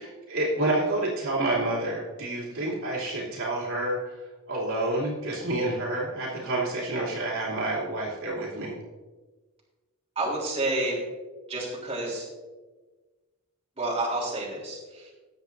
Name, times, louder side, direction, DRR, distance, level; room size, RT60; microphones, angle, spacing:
voice 1, 0.0-4.2 4.5-8.8, right 2 dB, 70° right, -6 dB, 3.0 m, -29 dB
voice 2, 10.2-11.0 11.5-12.2 13.8-15.1, right 2 dB, 30° right, -4 dB, 3.4 m, -29 dB
18.5 x 7.3 x 2.7 m, 1.3 s
head